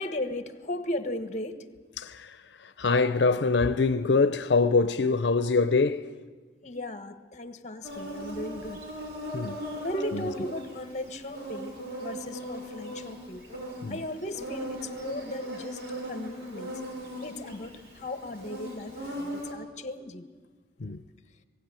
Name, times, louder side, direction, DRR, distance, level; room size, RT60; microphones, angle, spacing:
voice 1, 0.0-1.6 6.6-8.8 9.7-11.7 12.0-13.4 13.9-15.8 16.1-16.7 17.2-20.3 20.8-21.0, left 1 dB, 40° left, 1.3 m, -36 dB
voice 2, 2.0-6.1 9.3-9.6 10.1-10.3 13.8-14.0 20.8-21.0, left 4 dB, 85° left, 0.6 m, -25 dB
Insect, 7.8-19.5, equal, 70° right, 6.1 m, -39 dB
19.0 x 17.0 x 9.1 m
head